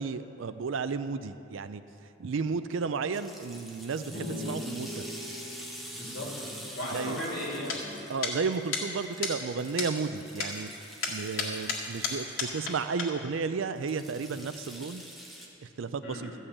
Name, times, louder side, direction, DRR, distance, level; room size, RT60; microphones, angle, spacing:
voice 1, 0.0-1.8 2.2-5.0 6.9-7.2 8.1-10.7 11.1-15.0 15.8-16.3, right 5 dB, 70° right, 12 dB, 0.4 m, -33 dB
sound 1, 3.1-12.9 13.8-15.5, equal, ahead, 1.1 m, -46 dB
sound 2, 4.1-7.7, left 1 dB, 35° left, 2.9 m, -41 dB
voice 2, 5.9-7.9 16.0-16.3, left 1 dB, 65° left, -4 dB, 2.8 m, -36 dB
sound 3, 7.7-7.8 8.2-8.3 8.7-8.8 9.2-9.3 9.8-9.9 10.4-10.5 11.0-12.7 13.0-13.1, left 5 dB, 85° left, 1.9 m, -31 dB
13.5 x 5.5 x 8.4 m, 2.8 s
head